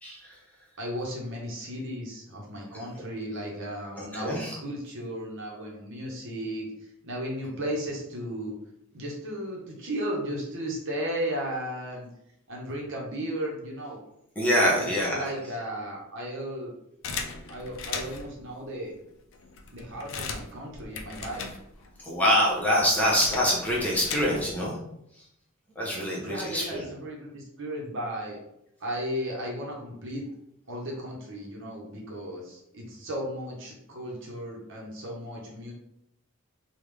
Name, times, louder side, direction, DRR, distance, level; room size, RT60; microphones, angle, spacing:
voice 1, 0.0-0.4 4.0-4.5 14.4-15.3 22.0-24.8 25.8-26.8, equal, 5° left, -6 dB, 0.8 m, -25 dB
voice 2, 0.8-6.7 7.0-8.6 8.9-12.1 12.5-14.0 14.7-16.7 17.5-19.0 19.7-21.4 26.2-28.4 28.8-30.2 30.7-35.7, equal, 60° right, -2 dB, 0.9 m, -35 dB
locking door, 17.0-18.4 19.0-19.1 19.3-22.0 22.3-24.6, left 5 dB, 60° left, 0.4 m, -38 dB
3.4 x 2.4 x 3.4 m, 0.79 s
head